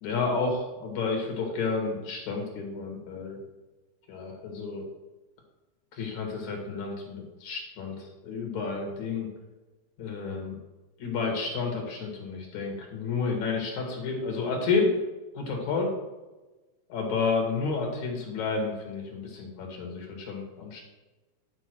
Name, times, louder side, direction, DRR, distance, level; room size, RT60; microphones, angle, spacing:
voice 1, 0.0-3.4 4.1-4.9 5.9-9.3 10.0-10.6 11.0-15.0 15.3-15.9 16.9-20.8, left 4 dB, 70° left, 1 dB, 3.1 m, -30 dB
11.0 x 5.7 x 4.5 m, 1.1 s
omnidirectional pair, 3.4 m